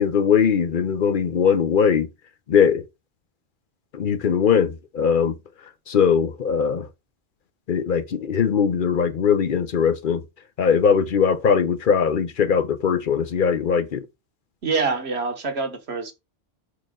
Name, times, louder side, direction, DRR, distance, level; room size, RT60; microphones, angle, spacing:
voice 1, 0.0-2.1 2.5-2.8 3.9-5.3 5.9-6.9 7.7-10.2 10.6-14.1, left 7 dB, 60° left, 0.8 m, -20 dB
voice 2, 14.6-16.1, right 4 dB, 85° right, 1.5 m, -25 dB
5.9 x 4.7 x 3.7 m
omnidirectional pair, 1.1 m